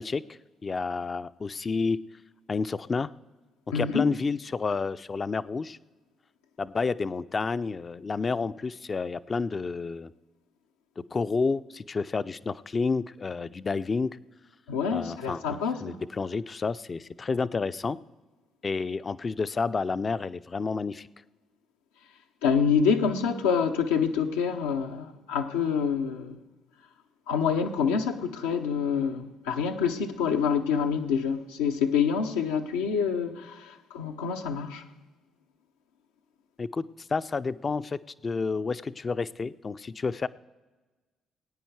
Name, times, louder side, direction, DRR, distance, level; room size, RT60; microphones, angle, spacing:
voice 1, 0.0-2.0 2.5-3.1 3.7-5.8 6.6-10.1 11.0-14.2 14.9-18.0 18.6-21.1 36.6-40.3, left 4 dB, 35° left, 0.4 m, -30 dB
voice 2, 3.7-4.1 14.7-16.0 22.4-26.4 27.3-34.8, left 6 dB, 85° left, 0.7 m, -27 dB
19.0 x 9.2 x 4.7 m
hypercardioid pair, 45°, 0 cm